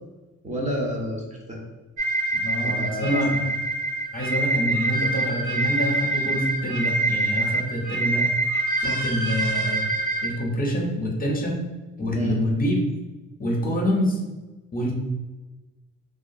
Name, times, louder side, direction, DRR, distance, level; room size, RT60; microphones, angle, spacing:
voice 1, 0.4-1.6 2.6-3.3 12.1-12.4, equal, 25° right, -1 dB, 0.5 m, -30 dB
sound 1, 2.0-10.3, right 2 dB, 85° right, 0.5 m, -25 dB
voice 2, 2.4-3.5 4.1-8.3 8.8-9.9 10.2-11.6 12.0-12.7 13.4-14.2 14.7-14.9, equal, 30° left, 0 dB, 0.5 m, -26 dB
2.4 x 2.2 x 2.5 m, 1.2 s
cardioid pair, 90°, 30 cm